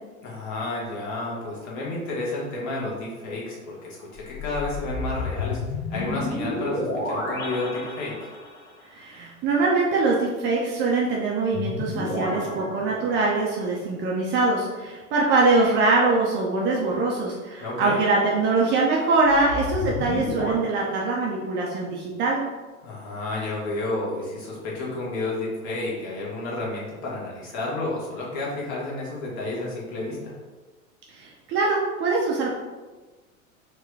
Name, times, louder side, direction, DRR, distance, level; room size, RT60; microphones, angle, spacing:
voice 1, 0.2-8.3 17.6-18.0 22.8-30.3, left 2 dB, 45° left, -4 dB, 1.4 m, -31 dB
sound 1, 4.1-8.7 11.5-13.6 19.2-20.5, left 2 dB, 25° left, 0.9 m, -31 dB
voice 2, 8.9-22.4 31.1-32.5, right 3 dB, 25° right, -3 dB, 0.5 m, -23 dB
4.5 x 2.2 x 3.2 m, 1.3 s
figure-of-eight pair, 85°, 42 cm